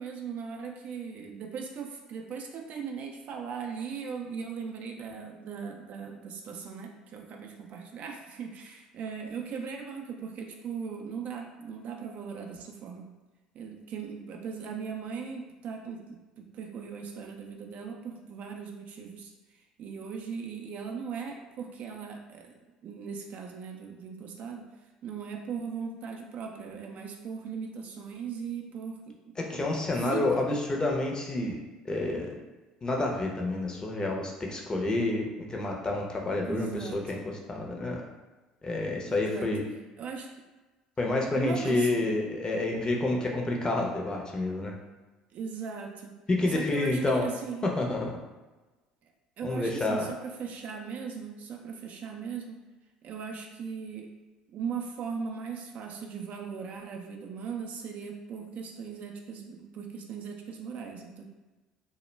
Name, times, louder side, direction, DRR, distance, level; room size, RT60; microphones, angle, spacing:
voice 1, 0.0-13.1 13.5-19.3 19.8-22.5 22.8-24.6 25.0-29.6 30.0-30.4 36.4-37.0 39.0-39.5 40.0-40.3 41.3-42.1 45.3-46.1 46.5-47.7 49.4-52.6 53.0-54.1 54.5-61.2, right 6 dB, 50° right, 2 dB, 0.3 m, -38 dB
voice 2, 29.4-31.6 31.8-32.3 32.8-37.2 37.5-38.0 38.6-39.6 41.0-44.7 46.3-47.3 47.6-48.2 49.4-50.1, left 2 dB, 25° left, 0 dB, 0.6 m, -29 dB
2.1 x 2.1 x 3.1 m, 1.2 s
hypercardioid pair, 65°, 3 cm